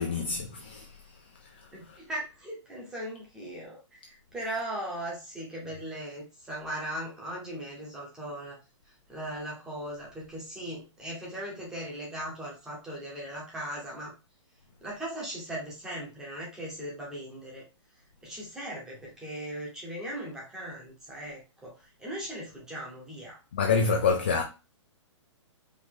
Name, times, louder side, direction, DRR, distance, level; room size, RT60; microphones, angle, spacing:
voice 1, 0.0-2.0 23.5-24.4, left 5 dB, 20° left, 0.3 m, -28 dB
voice 2, 1.7-8.6 8.8-14.1 14.8-17.6 18.2-23.4, right 1 dB, 5° right, 0.8 m, -38 dB
4.9 x 2.6 x 3.6 m
hypercardioid pair, 180°, 16 cm